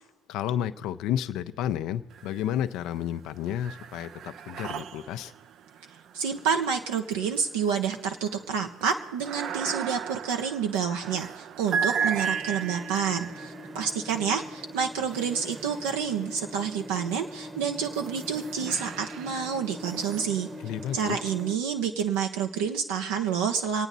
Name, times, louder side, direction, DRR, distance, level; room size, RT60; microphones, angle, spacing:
voice 1, 0.3-5.3 20.6-21.2, left 10 dB, 65° left, 11 dB, 0.6 m, -31 dB
sound 1, 2.1-2.8 3.1-16.3 16.9-21.4, right 6 dB, 55° right, 0.5 m, -36 dB
voice 2, 6.1-20.5 20.9-23.9, right 7 dB, 80° right, 3 dB, 0.8 m, -29 dB
sound 2, 12.0-21.6, equal, 20° right, 1.1 m, -43 dB
26.5 x 9.0 x 4.1 m, 1.1 s
hypercardioid pair, 65°, 0 cm